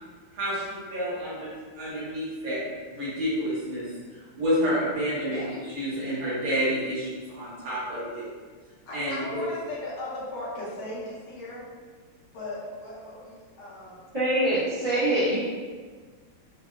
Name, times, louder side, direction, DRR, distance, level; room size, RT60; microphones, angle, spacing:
voice 1, 0.3-3.9 4.3-8.3 8.9-9.4, equal, 70° right, -8 dB, 1.7 m, -29 dB
voice 2, 8.9-11.6 12.3-14.1 14.9-15.0, left 1 dB, 75° left, -6 dB, 1.6 m, -37 dB
voice 3, 14.1-15.4, right 1 dB, 35° right, -14 dB, 0.8 m, -24 dB
4.1 x 2.0 x 2.2 m, 1.5 s
omnidirectional pair, 2.4 m